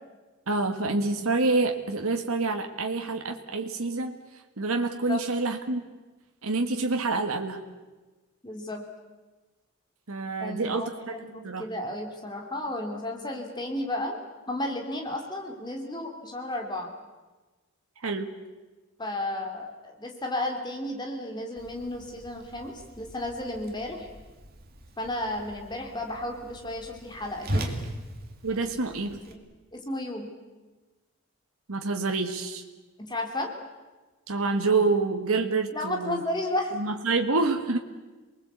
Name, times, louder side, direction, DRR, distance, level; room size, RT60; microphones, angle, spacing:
voice 1, 0.5-4.2 4.6-5.8 6.4-7.6 10.1-11.2 11.4-11.6 18.0-18.3 28.4-29.2 31.7-32.6 34.3-36.2 36.7-37.8, right 3 dB, 85° right, 4 dB, 1.6 m, -27 dB
voice 2, 8.4-8.8 10.4-14.2 14.5-16.9 19.0-24.1 25.0-27.7 29.3-29.4 29.7-30.3 33.1-33.5 35.7-36.7, left 1 dB, 20° left, 2 dB, 2.9 m, -33 dB
Whoosh swoosh swish, 21.6-29.3, right 1 dB, 45° right, 2.5 m, -39 dB
27.5 x 20.5 x 8.2 m, 1.2 s
head